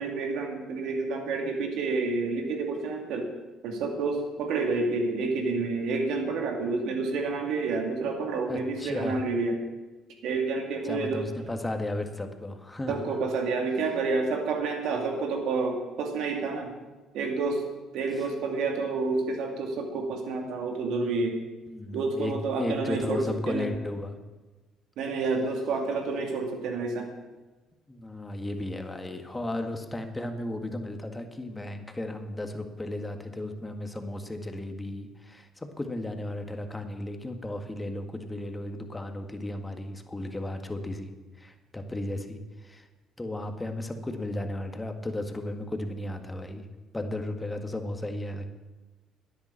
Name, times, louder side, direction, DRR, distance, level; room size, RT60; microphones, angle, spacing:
voice 1, 0.0-3.3 3.6-9.6 10.2-11.3 12.9-16.7 17.1-17.6 17.9-21.4 21.9-23.7 25.0-27.1, right 3 dB, 70° right, 2 dB, 2.4 m, -29 dB
voice 2, 8.5-9.2 10.8-13.1 21.7-24.2 27.9-41.1 41.4-42.9 43.2-46.7 46.9-48.5, left 1 dB, 15° left, 6 dB, 1.8 m, -34 dB
11.0 x 9.6 x 7.5 m, 1.2 s
hypercardioid pair, 55°, 0 cm